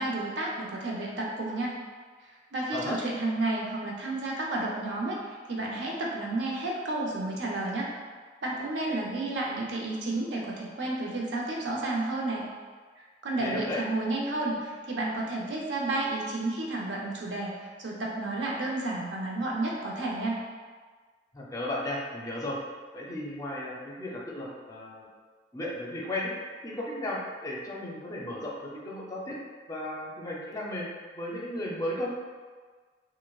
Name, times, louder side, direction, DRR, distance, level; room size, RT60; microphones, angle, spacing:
voice 1, 0.0-1.8 2.5-7.9 8.4-12.5 13.0-20.4, right 2 dB, 75° right, -3 dB, 0.7 m, -31 dB
voice 2, 13.4-13.8 21.3-22.6 22.9-25.1 25.5-26.3 26.6-29.4 29.7-30.9 31.1-32.1, left 1 dB, 20° left, -4 dB, 0.5 m, -35 dB
4.6 x 2.1 x 2.3 m, 1.5 s
head